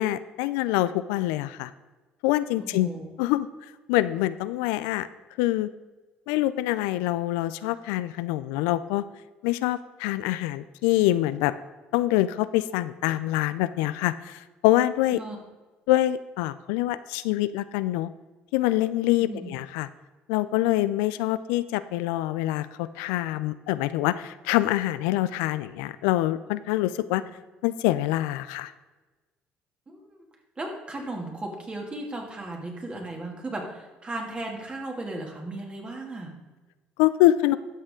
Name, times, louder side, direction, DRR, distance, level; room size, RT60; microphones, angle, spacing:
voice 1, 0.0-1.7 2.2-2.9 3.2-3.5 3.9-5.1 5.4-5.7 6.3-9.0 9.4-11.5 11.9-15.2 15.9-18.1 18.5-19.9 20.3-27.2 27.6-28.7 37.0-37.6, left 15 dB, 90° left, 14 dB, 0.3 m, -25 dB
voice 2, 2.6-3.0 15.1-15.4 19.2-19.5 29.9-30.0 30.6-36.3, right 2 dB, 30° right, 1 dB, 2.4 m, -36 dB
12.5 x 6.4 x 3.7 m, 1.2 s
supercardioid pair, 75°, 4 cm